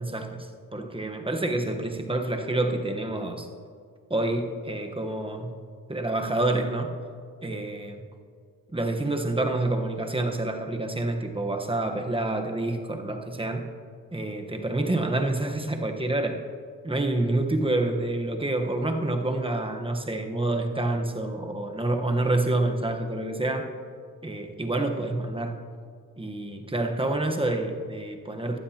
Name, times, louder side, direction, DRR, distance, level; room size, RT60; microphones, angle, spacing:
voice 1, 0.0-3.5 4.1-5.6 5.9-6.9 7.4-8.0 8.7-13.7 14.1-16.4 16.8-23.7 24.2-25.6 26.2-28.6, right 2 dB, 15° right, 4 dB, 1.2 m, -28 dB
16.5 x 12.0 x 2.9 m, 2.1 s
cardioid pair, 70°, 35 cm